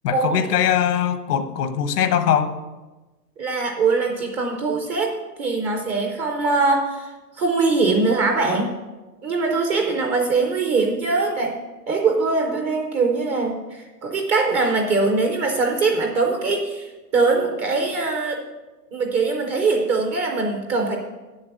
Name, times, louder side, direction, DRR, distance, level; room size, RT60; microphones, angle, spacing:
voice 1, 0.0-2.5, left 9 dB, 70° left, 10 dB, 1.1 m, -21 dB
voice 2, 3.4-5.1 5.4-7.1 7.4-8.7 9.2-11.6 11.9-18.4 18.9-21.0, right 3 dB, 15° right, 2 dB, 0.4 m, -22 dB
7.6 x 7.1 x 6.5 m, 1.2 s
hypercardioid pair, 135°, 48 cm